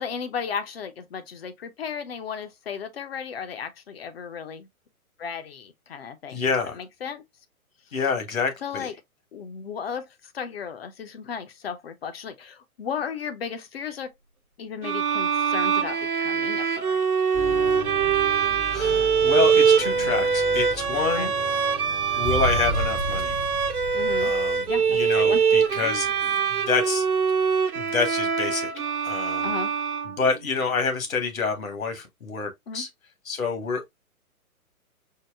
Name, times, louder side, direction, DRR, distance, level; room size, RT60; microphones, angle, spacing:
voice 1, 0.0-4.7 5.2-6.4 6.7-7.2 8.6-8.9 9.3-10.1 10.3-14.1 14.6-17.0 21.1-21.3 23.9-24.3 24.6-24.8 25.2-25.4 25.7-26.2 29.4-29.7 32.7-32.8, left 6 dB, 45° left, 0.6 m, -35 dB
voice 2, 6.3-6.8 7.9-8.9 18.7-21.3 22.2-23.4 24.2-26.4 26.6-27.0 27.7-28.7 29.0-29.5 30.0-32.9 33.2-33.9, left 4 dB, 65° left, 1.4 m, -27 dB
sound 1, 14.8-30.5, right 6 dB, 75° right, 1.0 m, -23 dB
sound 2, 17.3-26.8, equal, 15° right, 0.5 m, -34 dB
4.6 x 2.0 x 3.4 m
figure-of-eight pair, 120°, 44 cm